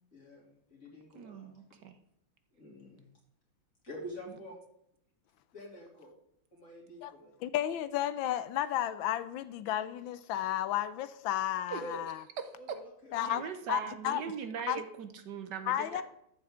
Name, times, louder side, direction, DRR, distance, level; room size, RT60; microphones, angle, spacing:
voice 1, 0.1-1.5 2.5-3.0 3.8-4.6 5.5-6.1 6.5-7.4 11.8-12.0 12.6-13.7, equal, 40° left, -3 dB, 3.5 m, -47 dB
voice 2, 1.1-2.0 11.7-11.8 12.4-12.8 13.2-16.0, right 7 dB, 65° right, 9 dB, 1.3 m, -40 dB
voice 3, 7.4-12.2 13.1-13.4 13.7-14.2 14.7-14.8 15.7-16.0, left 12 dB, 85° left, 13 dB, 1.4 m, -32 dB
13.5 x 7.7 x 3.7 m, 0.76 s
omnidirectional pair, 2.1 m